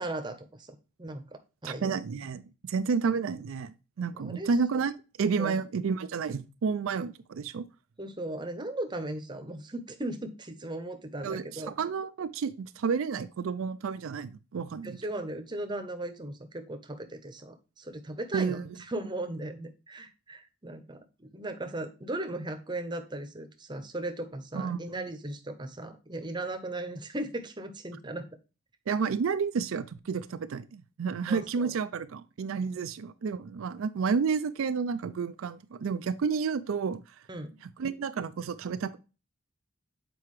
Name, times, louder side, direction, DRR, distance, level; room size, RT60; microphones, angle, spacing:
voice 1, 0.0-2.0 4.2-4.5 5.4-5.6 8.0-11.7 14.8-18.6 18.9-28.2 31.3-31.7 37.3-37.5, right 1 dB, 20° right, 0.8 m, -37 dB
voice 2, 1.6-4.9 5.2-7.6 11.2-15.0 18.3-18.7 24.5-25.0 28.9-37.2 37.8-39.0, right 5 dB, 65° right, 0.4 m, -31 dB
7.6 x 4.6 x 3.1 m
head